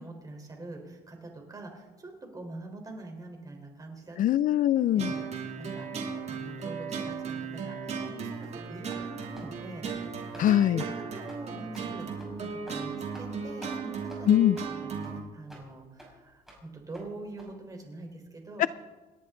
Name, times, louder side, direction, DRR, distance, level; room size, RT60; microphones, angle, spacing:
voice 1, 0.0-4.2 4.9-10.4 10.7-18.7, right 2 dB, 20° right, 2 dB, 4.1 m, -44 dB
voice 2, 4.2-5.1 10.4-10.8 14.3-14.6 18.6-18.7, left 12 dB, 55° left, 16 dB, 0.4 m, -22 dB
sound 1, 5.0-15.2, right 5 dB, 40° right, 2.7 m, -36 dB
sound 2, 8.4-8.6 8.9-9.1 9.3-9.5 9.8-10.0 10.3-10.5 10.8-10.9 11.3-11.4 11.7-11.9 12.2-12.3 12.7-12.8 13.1-13.3 13.6-13.8 14.1-14.2 14.5-14.7 15.0-15.1 15.5-15.6 16.0-16.1 16.5-16.6 16.9-17.1 17.4-17.5, right 1 dB, ahead, 5.7 m, -48 dB
28.5 x 10.5 x 3.9 m, 1.2 s
cardioid pair, 110°, 17 cm